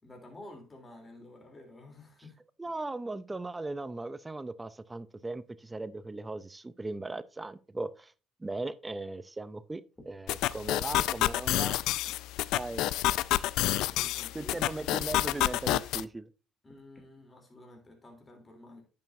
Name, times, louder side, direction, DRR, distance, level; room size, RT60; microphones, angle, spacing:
voice 1, 0.0-2.4 13.8-14.7 16.6-18.8, left 1 dB, 20° left, 3.2 m, -51 dB
voice 2, 2.6-8.1 8.4-11.8 12.5-12.9 14.3-16.3, right 2 dB, 15° right, 0.5 m, -38 dB
sound 1, 9.9-10.2 11.7-12.4 13.6-14.0 14.6-14.8 16.6-17.1 18.0-18.1, left 1 dB, 5° left, 2.7 m, -59 dB
sound 2, 10.3-16.0, left 15 dB, 75° left, 0.3 m, -29 dB
10.5 x 6.9 x 2.6 m
supercardioid pair, 75°, 0 cm